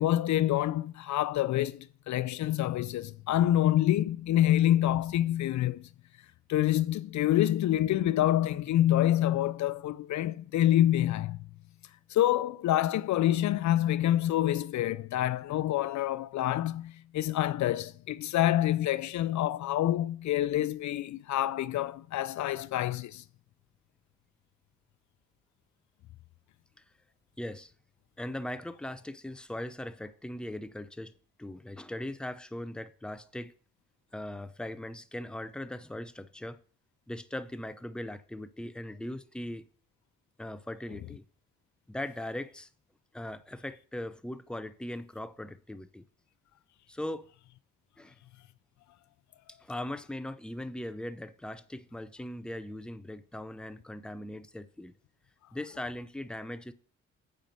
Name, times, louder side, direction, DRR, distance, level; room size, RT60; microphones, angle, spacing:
voice 1, 0.0-5.9 6.5-11.4 12.1-23.2, left 13 dB, 70° left, 0.5 m, -27 dB
voice 2, 27.4-27.7 28.2-33.5 34.1-36.6 37.1-39.7 40.4-41.2 41.9-42.7 43.1-46.0 46.9-47.3 48.0-48.2 49.6-54.9 55.5-56.7, left 1 dB, 5° left, 0.7 m, -39 dB
7.6 x 5.1 x 6.7 m
supercardioid pair, 60°, 30 cm